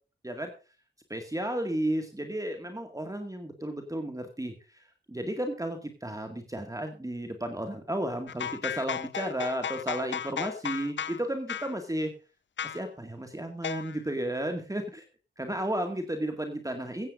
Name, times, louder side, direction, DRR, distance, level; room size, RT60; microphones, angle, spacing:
voice 1, 1.1-12.1 12.6-15.1 15.4-17.1, right 1 dB, 20° right, 5 dB, 2.0 m, -33 dB
sound 1, 8.3-11.2 11.5-11.7 12.6-12.8 13.6-14.0, left 8 dB, 75° left, 0.5 m, -34 dB
16.0 x 15.0 x 2.6 m, 0.33 s
wide cardioid pair, 70°, 19 cm